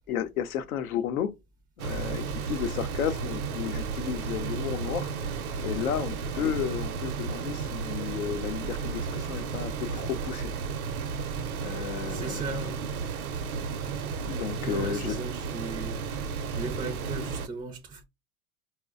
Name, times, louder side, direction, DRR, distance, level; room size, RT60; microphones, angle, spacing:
voice 1, 0.0-1.3 1.8-5.1 5.6-10.5 11.6-12.6 14.3-15.2, left 9 dB, 85° left, 0.7 m, -33 dB
sound 1, 1.8-17.5, right 5 dB, 85° right, 0.6 m, -33 dB
voice 2, 12.1-12.8 14.6-16.0 16.5-18.0, right 3 dB, 10° right, 0.3 m, -37 dB
4.2 x 2.1 x 2.3 m
hypercardioid pair, 100°, 42 cm